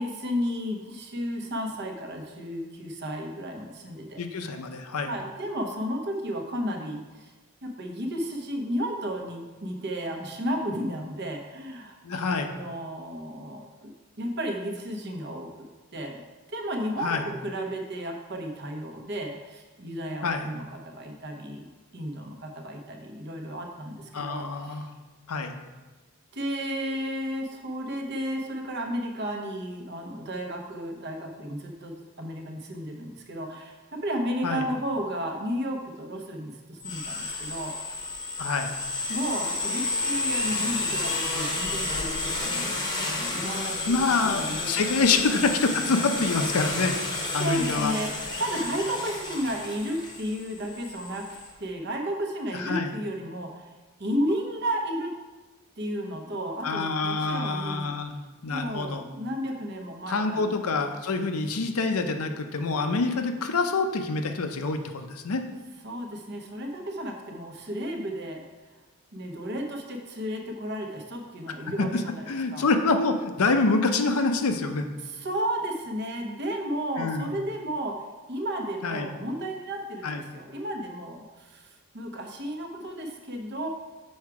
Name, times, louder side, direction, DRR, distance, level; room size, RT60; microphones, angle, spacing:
voice 1, 0.0-4.2 5.0-7.3 7.6-13.9 14.2-15.5 15.9-16.2 16.5-24.9 26.3-38.2 39.1-42.7 43.0-44.8 45.0-45.2 47.3-53.7 54.0-55.1 55.8-57.9 58.5-60.6 65.8-68.4 69.1-72.7 75.0-78.0 78.3-83.7, equal, 50° right, 2 dB, 0.9 m, -33 dB
voice 2, 4.2-5.1 12.0-12.5 17.0-17.2 20.2-20.5 24.1-24.9 25.3-25.5 34.4-34.7 38.4-38.8 43.9-47.0 47.3-47.9 52.6-52.9 56.6-59.0 60.1-65.4 71.8-72.0 72.3-74.9 77.0-77.3 78.8-79.1 80.0-80.2, left 3 dB, 85° left, 7 dB, 0.6 m, -26 dB
sound 1, 36.8-51.5, left 2 dB, 20° left, 0.8 m, -31 dB
6.4 x 4.7 x 4.7 m, 1.2 s
head